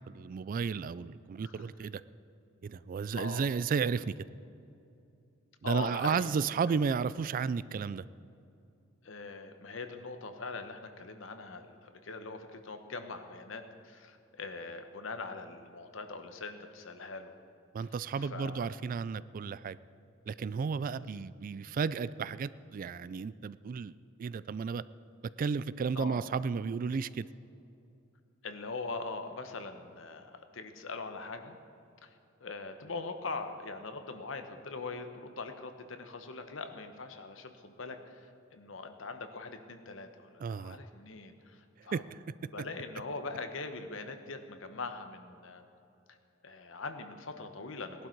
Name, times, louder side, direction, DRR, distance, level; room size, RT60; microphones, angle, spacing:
voice 1, 0.1-2.0 2.6-4.1 5.6-8.1 17.7-19.8 20.3-23.9 24.2-24.8 25.4-27.3 40.4-40.8 41.9-42.2, right 5 dB, 45° right, 17 dB, 0.3 m, -33 dB
voice 2, 3.1-3.5 5.6-6.3 9.0-17.3 18.2-18.7 21.0-21.2 25.9-26.2 28.4-31.6 32.0-42.0 42.5-45.6 46.4-48.1, left 3 dB, 70° left, 7 dB, 1.1 m, -42 dB
18.0 x 11.5 x 4.6 m, 2.6 s
head